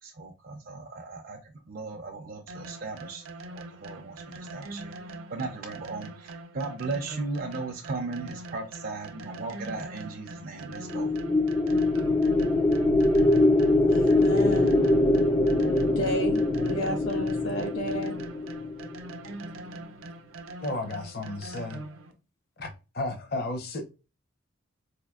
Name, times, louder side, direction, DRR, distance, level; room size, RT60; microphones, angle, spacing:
voice 1, 0.0-5.0 5.3-11.1, right 3 dB, 45° right, 0.5 m, -37 dB
sound 1, 2.5-22.1, right 2 dB, 90° right, 0.6 m, -43 dB
sound 2, 10.7-19.1, left 2 dB, 15° left, 0.3 m, -23 dB
voice 2, 13.9-14.8 15.9-18.1, equal, 70° left, 1.1 m, -32 dB
voice 3, 20.6-21.8 22.6-22.7 22.9-23.8, left 2 dB, 50° left, 0.7 m, -33 dB
4.3 x 2.6 x 2.2 m
head